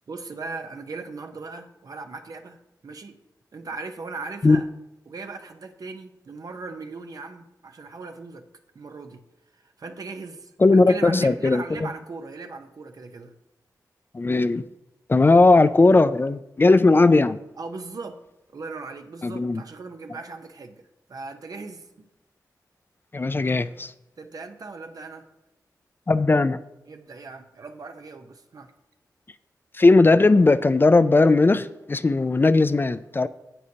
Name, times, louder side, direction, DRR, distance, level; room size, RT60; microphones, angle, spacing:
voice 1, 0.1-2.6 2.8-3.2 3.5-4.7 5.1-8.4 8.7-9.2 9.5-13.3 17.6-18.2 18.5-21.9 24.2-25.3 26.9-28.7, right 3 dB, 60° right, 6 dB, 0.9 m, -38 dB
voice 2, 10.6-11.6 14.1-14.6 15.1-17.4 19.2-19.6 23.1-23.9 26.1-26.6 29.8-33.3, left 3 dB, 30° left, 12 dB, 0.4 m, -18 dB
9.9 x 7.9 x 2.8 m, 0.95 s
cardioid pair, 70°, 7 cm